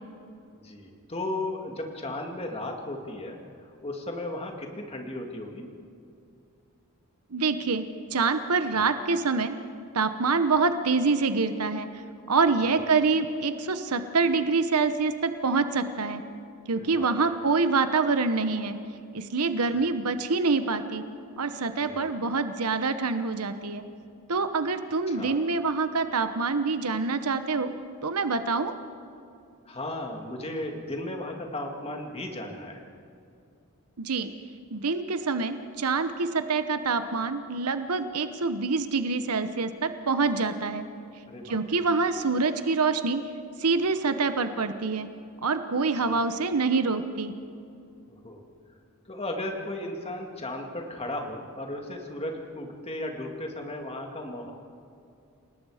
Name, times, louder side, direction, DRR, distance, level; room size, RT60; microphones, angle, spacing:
voice 1, 0.6-5.7 8.7-8.9 12.6-12.8 16.7-17.3 19.7-19.9 21.8-22.1 25.1-25.4 29.7-32.8 41.3-41.8 46.0-46.1 48.1-48.4 49.1-54.5, left 1 dB, 25° left, 2 dB, 2.3 m, -36 dB
voice 2, 7.3-7.8 8.1-9.5 9.9-11.9 12.3-16.2 16.7-18.8 19.1-21.0 21.4-23.8 24.3-27.7 28.0-28.7 34.0-34.3 34.7-40.9 41.4-43.2 43.6-45.1 45.4-47.3, right 4 dB, 85° right, 10 dB, 1.0 m, -26 dB
28.5 x 19.0 x 5.0 m, 2.5 s
head